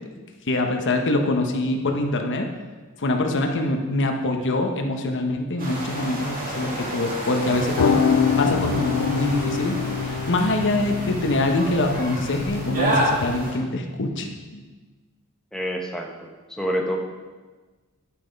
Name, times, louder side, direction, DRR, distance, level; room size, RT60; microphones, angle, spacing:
voice 1, 0.5-2.5 3.0-9.8 10.0-14.3 14.5-14.6, left 2 dB, 55° left, 4 dB, 1.1 m, -24 dB
sound 1, 5.6-13.6, right 1 dB, 40° right, 2.2 m, -30 dB
sound 2, 7.5-13.5, left 6 dB, 90° left, 0.4 m, -26 dB
voice 2, 15.5-17.0, equal, 5° left, 1 dB, 0.9 m, -28 dB
10.5 x 7.4 x 5.3 m, 1.3 s
head